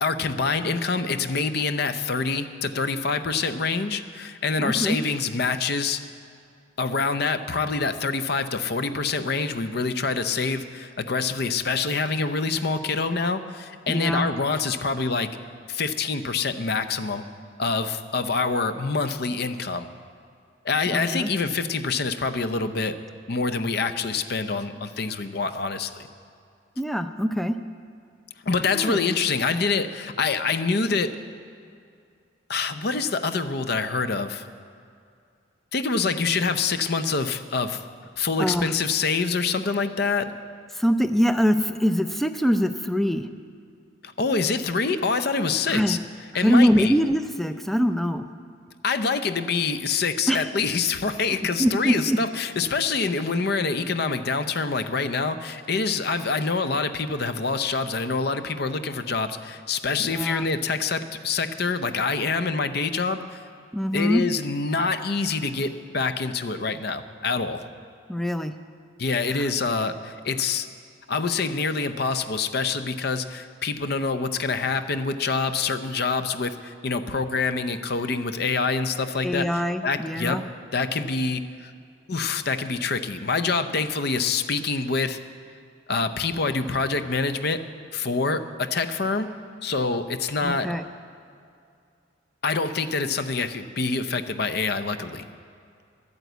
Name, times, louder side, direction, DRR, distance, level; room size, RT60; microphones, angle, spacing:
voice 1, 0.0-6.0 6.8-15.3 15.7-17.2 17.6-19.9 20.6-22.9 23.3-26.1 28.5-31.2 32.5-34.4 35.7-37.9 38.2-40.3 44.0-46.0 46.3-46.9 48.8-63.4 63.9-67.6 69.0-70.7 71.1-80.4 80.7-81.7 82.1-85.2 85.9-87.6 87.9-89.3 89.6-90.7 92.4-95.3, left 4 dB, 55° left, 10 dB, 0.6 m, -26 dB
voice 2, 4.6-5.0 13.9-14.3 20.9-21.3 26.8-27.6 28.7-29.0 38.4-38.7 40.7-43.3 45.7-46.0 46.3-48.3 50.3-50.5 51.6-52.2 60.0-60.5 63.7-64.2 68.1-68.5 69.3-69.5 79.2-80.4 90.4-90.8, equal, ahead, 9 dB, 0.4 m, -23 dB
11.0 x 9.2 x 8.1 m, 2.3 s
head